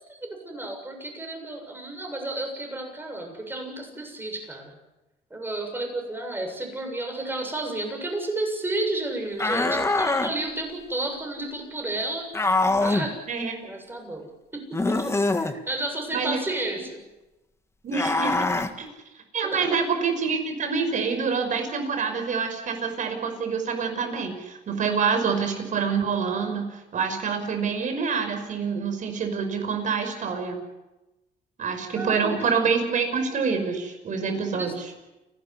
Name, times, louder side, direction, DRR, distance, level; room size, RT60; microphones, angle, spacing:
voice 1, 0.1-4.8 5.3-12.3 12.8-13.2 13.6-17.0 19.4-19.8 31.9-32.5 34.5-34.7, right 2 dB, 10° right, 3 dB, 7.3 m, -32 dB
sound 1, 9.4-10.3 12.3-13.1 14.7-15.5 17.9-18.7, left 2 dB, 15° left, 1.7 m, -23 dB
voice 2, 13.3-13.7 16.1-16.4 17.8-18.4 18.8-18.9 19.3-30.6 31.6-34.9, right 5 dB, 50° right, 6 dB, 5.8 m, -26 dB
29.5 x 12.5 x 9.8 m, 1.0 s
cardioid pair, 110°, 17 cm